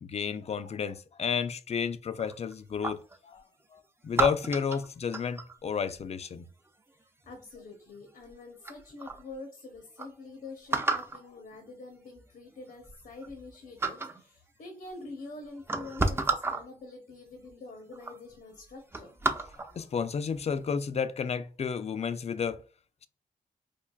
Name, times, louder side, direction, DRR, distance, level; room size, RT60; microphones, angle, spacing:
voice 1, 0.0-3.4 3.7-6.5 19.6-22.6, left 6 dB, 45° left, 0.4 m, -32 dB
sound 1, 2.2-3.2 4.1-5.6 7.2-7.7 8.3-8.4 8.6-9.2 9.7-9.8 10.0-10.1 10.7-11.2 12.2-12.3 12.7-13.5 13.8-14.2 15.1-15.2 15.6-16.6 17.5-17.6 17.9-18.2 18.5-19.8 20.3-20.5, right 3 dB, 15° right, 0.4 m, -31 dB
voice 2, 7.2-19.1, left 3 dB, 80° left, 0.9 m, -46 dB
4.5 x 2.4 x 2.3 m
cardioid pair, 85°, 16 cm